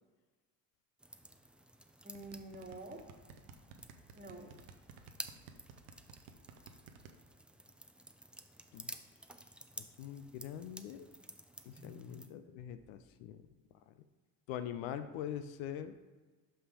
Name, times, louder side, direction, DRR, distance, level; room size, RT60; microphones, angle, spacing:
sound 1, 1.0-12.3, right 1 dB, ahead, 0.5 m, -53 dB
voice 1, 2.0-3.7 4.1-4.5 11.7-12.3, right 2 dB, 20° right, 2 dB, 1.4 m, -50 dB
sound 2, 2.1-7.1, right 7 dB, 80° right, 0.8 m, -53 dB
voice 2, 9.8-11.1 11.7-13.4 13.9-14.0 14.5-15.9, left 10 dB, 70° left, 10 dB, 0.6 m, -43 dB
5.6 x 5.5 x 4.9 m, 1.3 s
hypercardioid pair, 55°, 48 cm